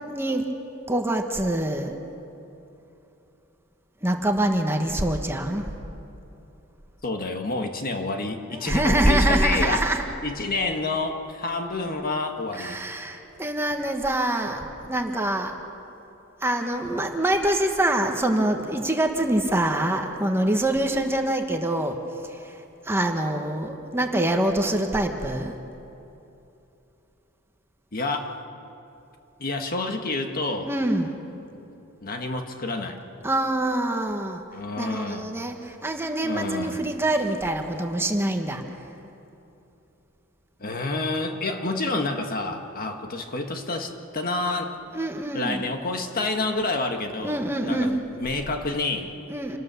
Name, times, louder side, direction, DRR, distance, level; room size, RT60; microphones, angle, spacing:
voice 1, 0.1-0.4 0.9-2.0 4.0-5.6 8.6-10.0 12.6-15.5 16.4-22.0 22.3-22.5 22.8-25.6 30.7-31.1 33.2-34.4 34.7-38.6 44.9-45.6 47.2-48.0 49.3-49.6, right 1 dB, 10° right, 4 dB, 1.3 m, -25 dB
voice 2, 7.0-9.9 10.2-12.8 27.9-28.4 29.4-30.7 32.0-33.0 34.5-35.3 36.2-36.8 40.6-44.8 45.3-49.1, left 2 dB, 45° left, 4 dB, 1.6 m, -28 dB
27.0 x 18.5 x 7.0 m, 2.9 s
head